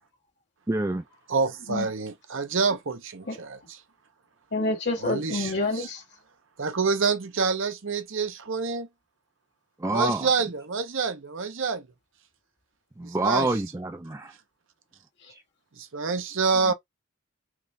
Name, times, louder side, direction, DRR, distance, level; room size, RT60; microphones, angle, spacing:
voice 1, 0.7-1.0 9.8-10.3 13.0-14.3 15.3-15.4, right 2 dB, 15° right, 0.4 m, -27 dB
voice 2, 1.3-3.8 5.0-5.9 6.6-8.9 9.9-11.9 13.0-13.5 15.8-16.7, right 4 dB, 60° right, 0.8 m, -27 dB
voice 3, 4.5-6.0 16.6-16.7, left 2 dB, 50° left, 2.2 m, -28 dB
4.8 x 2.5 x 3.3 m
head